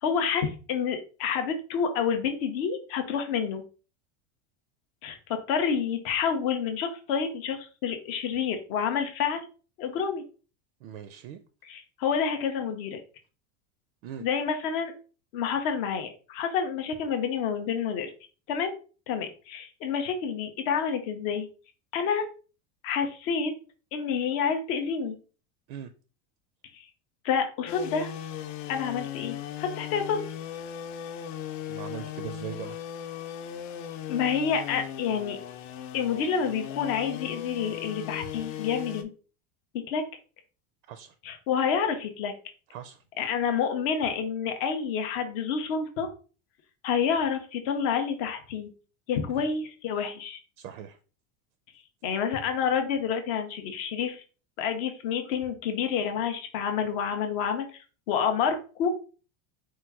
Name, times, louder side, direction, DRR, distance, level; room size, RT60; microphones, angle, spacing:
voice 1, 0.0-3.6 5.0-9.4 9.8-10.2 11.6-13.0 14.2-14.9 15.3-18.1 18.5-18.7 19.1-21.5 21.9-22.2 22.8-23.5 23.9-25.2 26.7-26.9 27.2-28.1 28.7-30.2 34.1-35.4 35.9-39.1 39.9-40.0 41.2-42.3 43.2-46.1 46.8-48.7 49.1-50.4 52.0-54.2 54.6-58.9, left 7 dB, 30° left, 0.3 m, -28 dB
voice 2, 10.8-11.4 14.0-14.3 25.7-25.9 31.7-32.8 40.9-41.1 42.7-43.0 49.4-49.5 50.6-51.0, right 9 dB, 70° right, 0.6 m, -40 dB
sound 1, 27.7-39.0, left 10 dB, 60° left, 0.7 m, -38 dB
4.5 x 2.2 x 4.5 m
supercardioid pair, 175°, 43 cm